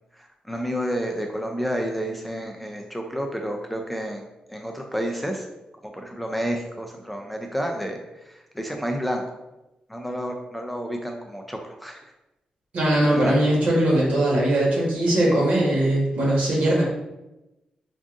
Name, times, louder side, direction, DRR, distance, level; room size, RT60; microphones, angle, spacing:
voice 1, 0.2-5.4 5.9-8.0 8.3-9.2 9.9-12.0 13.1-13.3, equal, ahead, 2 dB, 0.3 m, -30 dB
voice 2, 12.7-16.8, right 1 dB, 70° right, -4 dB, 1.3 m, -20 dB
4.6 x 2.5 x 2.5 m, 0.96 s
wide cardioid pair, 140°, 2 cm